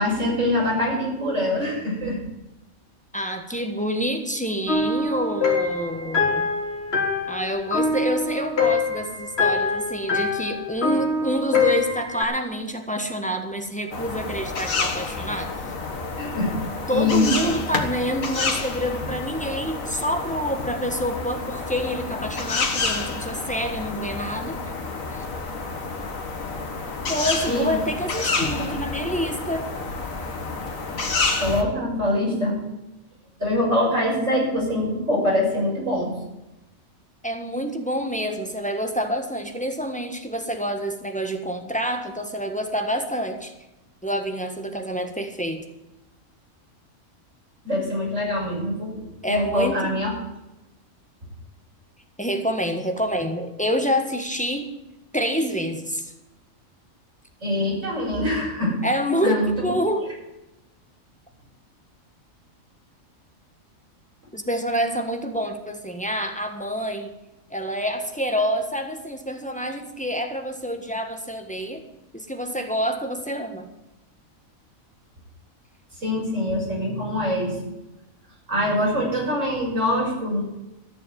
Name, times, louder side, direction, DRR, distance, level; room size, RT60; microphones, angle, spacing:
voice 1, 0.0-2.2 16.2-16.5 16.9-17.3 27.4-27.7 28.5-28.6 31.4-32.6 33.4-36.1 47.6-50.1 57.4-58.7 59.2-59.7 76.0-77.6 78.5-80.4, left 1 dB, 65° right, -4 dB, 6.8 m, -24 dB
voice 2, 3.1-6.5 7.3-15.5 16.9-24.6 25.1-25.3 27.1-29.7 37.2-43.5 44.0-45.6 49.2-50.0 52.2-54.7 55.1-56.1 58.8-60.1 64.3-67.1 67.5-71.8 72.1-73.7, equal, 5° left, 5 dB, 1.4 m, -27 dB
sound 1, 4.7-12.2, left 4 dB, 50° left, 2.3 m, -24 dB
sound 2, 13.9-31.6, left 3 dB, 75° left, 2.0 m, -29 dB
14.0 x 7.0 x 9.3 m, 0.96 s
omnidirectional pair, 1.4 m